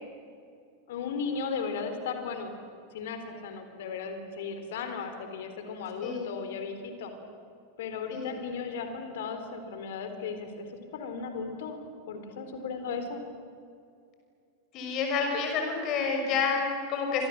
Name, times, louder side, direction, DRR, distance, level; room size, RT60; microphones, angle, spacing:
voice 1, 0.9-2.5 2.9-7.1 7.8-10.7 10.9-11.8 12.1-13.2, left 5 dB, 55° left, 7 dB, 3.9 m, -36 dB
voice 2, 8.1-8.4 14.7-17.3, left 5 dB, 35° left, 3 dB, 6.1 m, -29 dB
28.5 x 26.0 x 7.6 m, 2.4 s
figure-of-eight pair, 90°, 0 cm